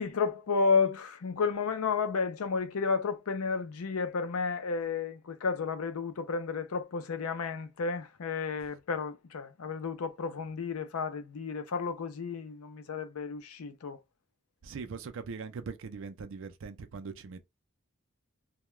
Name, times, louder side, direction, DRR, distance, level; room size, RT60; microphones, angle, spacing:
voice 1, 0.0-14.0, left 5 dB, 80° left, 0.5 m, -32 dB
voice 2, 14.6-17.4, right 5 dB, 60° right, 0.4 m, -41 dB
2.2 x 2.2 x 3.0 m
head